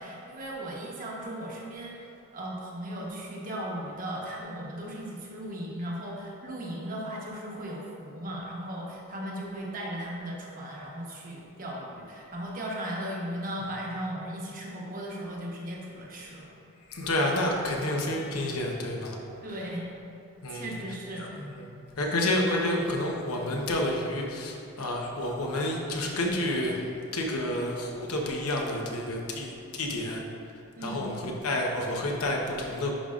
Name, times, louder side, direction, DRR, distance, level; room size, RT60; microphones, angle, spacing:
voice 1, 0.0-16.5 19.4-19.9 20.5-21.3 30.8-31.1, right 1 dB, 40° right, -3 dB, 1.0 m, -37 dB
voice 2, 16.9-19.2 20.4-20.7 21.2-26.8 27.1-30.2 30.8-32.9, left 1 dB, 80° left, 0 dB, 0.9 m, -29 dB
10.5 x 5.2 x 2.5 m, 2.6 s
head